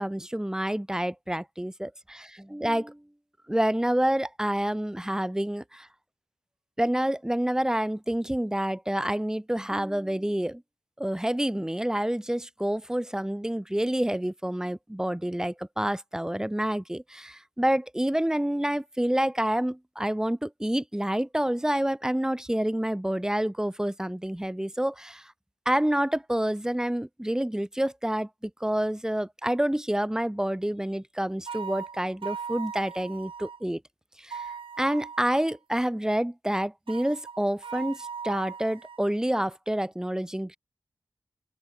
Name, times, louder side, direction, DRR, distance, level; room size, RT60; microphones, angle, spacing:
voice 1, 0.0-3.0 3.5-5.9 6.8-10.6 11.0-25.3 25.7-33.8 34.2-40.6, right 1 dB, 5° right, 2.0 m, -28 dB
sound 1, 31.5-33.6 34.3-35.6 36.9-39.0, right 6 dB, 85° right, 1.6 m, -39 dB
open air
wide cardioid pair, 105°, 9 cm